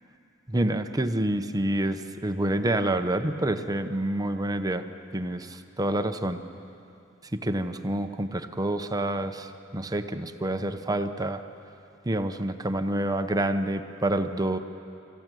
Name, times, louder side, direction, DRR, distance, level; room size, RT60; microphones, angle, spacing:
voice 1, 0.5-4.8 5.1-6.4 7.3-11.4 12.0-14.6, right 1 dB, 20° right, 8 dB, 0.8 m, -28 dB
25.5 x 15.0 x 9.1 m, 2.7 s
head